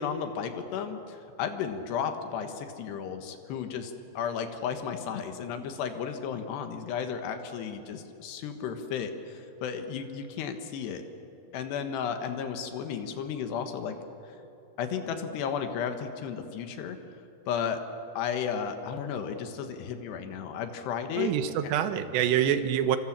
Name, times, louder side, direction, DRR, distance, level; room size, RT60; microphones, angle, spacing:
voice 1, 0.0-11.0 11.5-14.0 14.3-14.4 14.8-17.0 17.5-17.8 18.2-21.3, left 7 dB, 80° left, 6 dB, 3.4 m, -33 dB
voice 2, 21.2-23.0, right 10 dB, 90° right, 10 dB, 3.4 m, -26 dB
28.0 x 25.5 x 7.4 m, 2.8 s
omnidirectional pair, 4.8 m